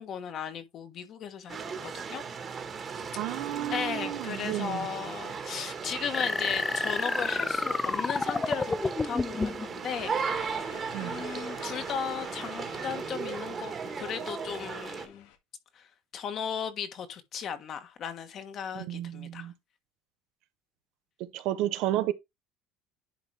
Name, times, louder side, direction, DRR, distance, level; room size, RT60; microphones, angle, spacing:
voice 1, 0.0-2.2 3.3-10.7 11.0-15.3 15.7-19.5, left 7 dB, 40° left, 1.4 m, -37 dB
sound 1, 1.5-15.1, right 6 dB, 25° right, 1.5 m, -37 dB
voice 2, 3.2-4.9 10.9-11.1 18.7-19.5 21.2-22.1, right 14 dB, 65° right, 0.9 m, -32 dB
sound 2, 6.1-9.7, left 3 dB, 15° left, 0.4 m, -30 dB
sound 3, 9.9-15.4, left 11 dB, 85° left, 1.5 m, -49 dB
10.5 x 4.0 x 3.4 m
cardioid pair, 155°, 0 cm